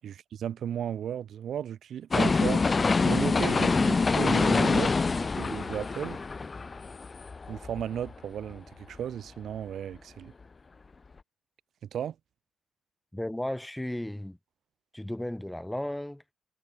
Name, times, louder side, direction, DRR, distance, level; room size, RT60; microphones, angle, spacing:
voice 1, 0.0-2.6 3.0-6.2 7.5-10.3 11.9-12.1, right 9 dB, 65° right, 7.9 m, -34 dB
sound 1, 2.1-8.1 8.5-8.6, left 4 dB, 30° left, 0.9 m, -26 dB
voice 2, 13.1-14.4 14.9-16.3, left 1 dB, 5° left, 6.4 m, -35 dB
cardioid pair, 90°, 0 cm